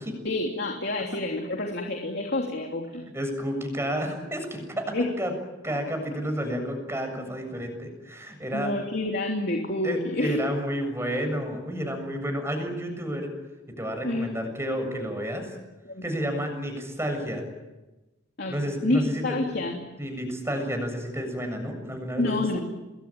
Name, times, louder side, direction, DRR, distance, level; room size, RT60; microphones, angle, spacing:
voice 1, 0.2-3.0 4.9-5.1 8.5-10.4 14.0-14.3 15.8-16.0 18.4-18.6 18.8-19.8 22.2-22.6, left 2 dB, 55° left, 1 dB, 3.2 m, -28 dB
voice 2, 3.1-5.3 5.6-8.7 9.8-13.3 13.8-15.5 16.0-17.5 18.5-19.2 20.0-22.6, equal, 15° right, 5 dB, 7.2 m, -31 dB
28.5 x 21.5 x 9.0 m, 1.1 s
head